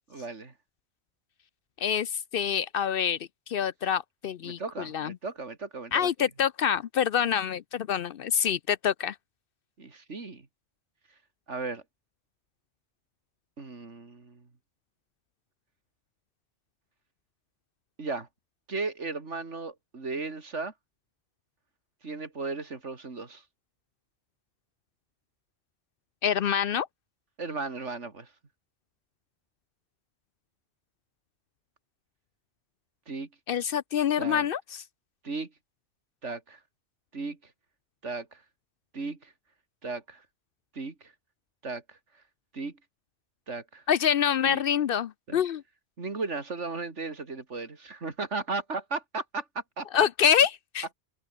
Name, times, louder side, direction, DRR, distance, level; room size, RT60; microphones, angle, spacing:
voice 1, 0.1-0.5 4.4-6.3 9.8-10.5 11.5-11.8 13.6-14.5 18.0-18.3 18.7-20.7 22.0-23.4 27.4-28.3 33.1-33.3 34.2-34.5 35.2-35.5 36.2-36.6 37.1-37.5 38.0-38.4 38.9-39.3 39.8-40.2 40.7-41.1 41.6-42.0 42.5-42.8 43.5-43.8 44.5-44.6 45.3-45.4 46.0-50.1, right 3 dB, 80° right, 3.0 m, -36 dB
voice 2, 1.8-5.2 5.9-9.2 26.2-26.9 33.5-34.8 43.9-45.6 49.9-50.9, left 8 dB, 60° left, 0.7 m, -26 dB
omnidirectional pair, 1.2 m